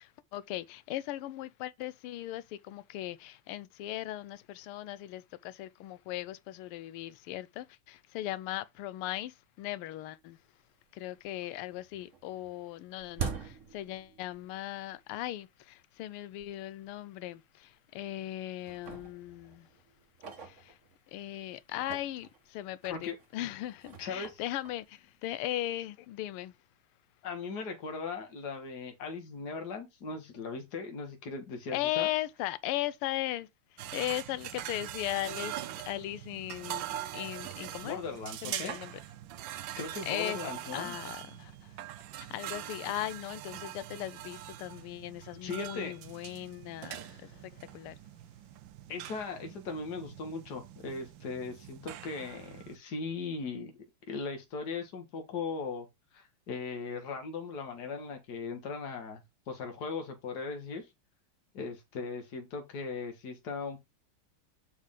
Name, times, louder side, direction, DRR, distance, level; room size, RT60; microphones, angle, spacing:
voice 1, 0.0-10.4 10.9-19.7 20.3-20.8 21.1-26.5 31.7-36.9 37.1-38.0 38.4-39.0 40.0-41.8 42.2-48.0, left 14 dB, 90° left, 1.5 m, -38 dB
sound 1, 10.4-10.5 10.9-11.5 11.7-14.6 14.9-15.0 15.8-15.9 16.4-16.5 16.8-17.0 17.7-18.2 18.6-21.2 21.6-25.6, right 6 dB, 45° right, 1.2 m, -44 dB
voice 2, 24.0-24.4 27.2-32.1 37.8-38.8 39.8-41.0 45.4-45.9 47.0-47.2 48.9-53.7 54.1-55.9 56.1-59.2 59.5-60.9 61.5-63.8, left 4 dB, 50° left, 2.0 m, -38 dB
sound 2, 33.8-52.8, right 12 dB, 70° right, 1.2 m, -43 dB
6.5 x 5.3 x 3.6 m
omnidirectional pair, 2.4 m